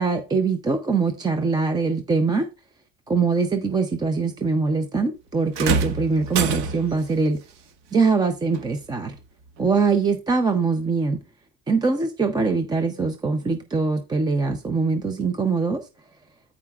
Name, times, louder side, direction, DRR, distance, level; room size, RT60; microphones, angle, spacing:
voice 1, 0.0-2.4 3.1-7.4 7.9-9.1 9.6-11.2 11.7-15.8, right 4 dB, 10° right, 0.5 m, -23 dB
sound 1, 5.5-7.1 8.5-8.7 9.6-9.7, right 5 dB, 65° right, 1.6 m, -25 dB
14.0 x 4.9 x 2.3 m
cardioid pair, 170°, 36 cm